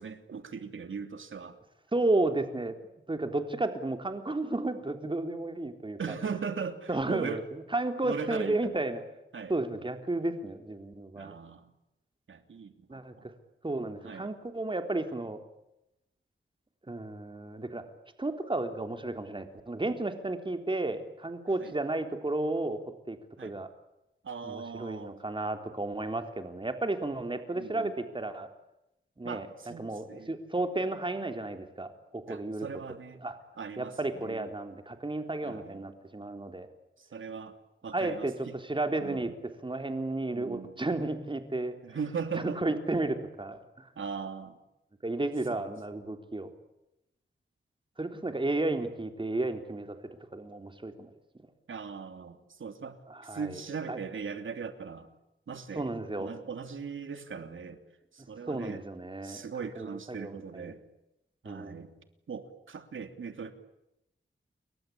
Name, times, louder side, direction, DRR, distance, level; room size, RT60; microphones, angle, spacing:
voice 1, 0.0-1.6 6.0-7.4 8.0-8.7 9.3-9.5 11.2-11.6 12.3-13.3 14.0-14.3 21.6-21.7 23.4-23.5 24.2-25.1 27.5-27.9 29.2-30.3 32.3-33.2 33.6-34.5 35.4-35.8 37.0-37.6 37.8-38.6 39.0-39.3 40.3-40.8 41.8-42.6 44.0-44.6 45.5-45.7 51.7-55.1 55.5-55.9 56.2-57.8 58.1-58.8 59.2-60.8 61.4-61.9 62.3-63.5, right 5 dB, 85° right, 8 dB, 3.0 m, -39 dB
voice 2, 1.9-2.8 3.1-6.3 6.9-9.0 9.5-11.3 12.9-13.3 13.6-15.4 16.9-17.8 18.2-22.8 23.1-23.2 23.4-23.7 24.4-28.5 29.2-29.5 29.8-32.7 33.2-33.4 33.8-36.7 37.9-38.3 38.6-39.3 39.6-41.8 42.4-43.9 45.0-46.5 48.0-50.0 50.3-51.1 53.1-53.6 53.9-54.0 55.8-56.3 58.5-59.4 59.8-60.8 61.5-61.8, right 2 dB, 25° right, 6 dB, 3.6 m, -33 dB
29.5 x 23.0 x 8.7 m, 0.88 s
wide cardioid pair, 120°, 20 cm